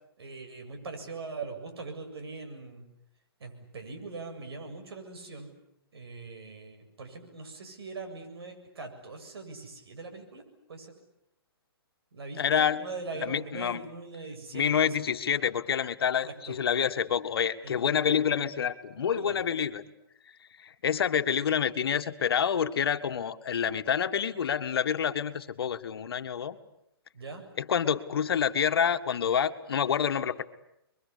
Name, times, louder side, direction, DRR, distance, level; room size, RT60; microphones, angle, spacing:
voice 1, 0.2-2.9 3.4-5.5 5.9-10.4 10.7-10.9 12.1-14.9 16.2-16.6 17.6-18.2 19.0-19.4 27.1-27.4, right 4 dB, 75° right, 5 dB, 7.6 m, -41 dB
voice 2, 12.4-12.8 13.2-13.8 14.5-19.8 20.6-26.6 27.6-30.4, left 8 dB, 70° left, 9 dB, 1.7 m, -27 dB
30.0 x 23.0 x 8.4 m, 0.81 s
hypercardioid pair, 150°, 13 cm